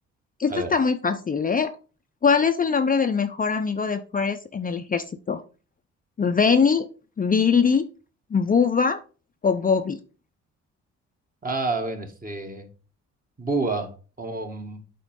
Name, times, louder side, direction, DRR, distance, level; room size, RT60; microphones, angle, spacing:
voice 1, 0.4-1.8 2.2-5.4 6.2-6.9 7.2-7.9 8.3-9.0 9.4-10.0, left 5 dB, 30° left, 0.6 m, -22 dB
voice 2, 11.4-12.7 13.4-14.8, right 3 dB, 30° right, 1.9 m, -29 dB
8.1 x 4.6 x 3.8 m
cardioid pair, 90°, 30 cm